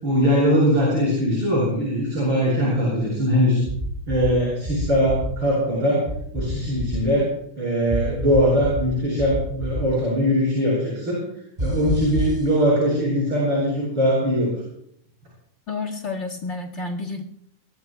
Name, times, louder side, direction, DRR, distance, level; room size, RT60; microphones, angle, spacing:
voice 1, 0.0-3.6 4.1-6.1 6.3-11.2 11.6-14.6, equal, 40° right, -6 dB, 8.6 m, -21 dB
sound 1, 3.7-4.3 4.7-5.3 6.1-7.0 7.9-8.9 9.2-9.8 11.6-12.4, equal, 15° right, 3.5 m, -27 dB
voice 2, 15.7-17.2, left 3 dB, 30° left, 4 dB, 1.6 m, -30 dB
28.0 x 22.0 x 2.3 m, 0.68 s
omnidirectional pair, 3.6 m